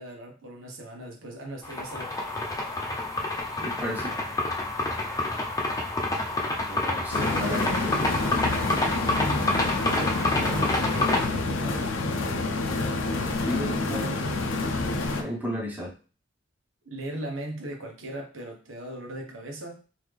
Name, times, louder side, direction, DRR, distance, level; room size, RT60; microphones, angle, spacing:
voice 1, 0.0-2.1 10.7-11.9 16.8-19.8, right 1 dB, 85° right, 1 dB, 1.1 m, -38 dB
sound 1, 1.6-11.3, left 2 dB, 20° left, 0.7 m, -28 dB
voice 2, 3.6-4.1 6.7-8.2 9.8-10.8 13.4-14.2 14.8-15.9, equal, 10° right, -3 dB, 1.1 m, -34 dB
sound 2, 7.1-15.2, left 3 dB, 80° left, 0.6 m, -28 dB
3.9 x 2.8 x 3.3 m, 0.36 s
head